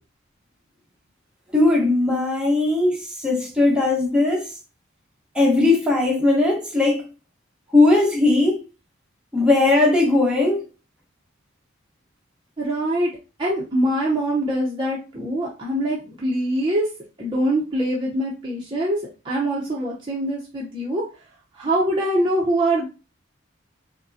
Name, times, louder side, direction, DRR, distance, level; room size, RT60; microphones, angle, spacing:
voice 1, 1.5-4.6 5.3-7.1 7.7-8.6 9.3-10.7, left 2 dB, 5° right, 1.0 m, -18 dB
voice 2, 12.6-13.1 13.4-16.9 17.2-19.0 19.2-21.0 21.5-22.9, right 1 dB, 25° right, 0.6 m, -23 dB
4.9 x 2.1 x 2.6 m
head